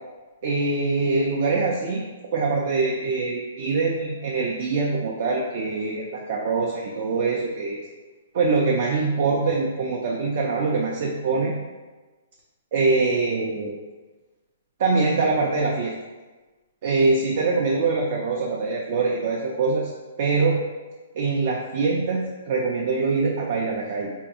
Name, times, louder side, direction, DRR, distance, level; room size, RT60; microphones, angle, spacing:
voice 1, 0.4-2.1 2.3-7.9 8.3-11.5 12.7-13.8 14.8-15.9 16.8-19.9 20.2-20.6 21.2-24.1, right 3 dB, 50° right, -2 dB, 0.4 m, -23 dB
3.4 x 2.3 x 2.7 m, 1.3 s
hypercardioid pair, 155°, 0 cm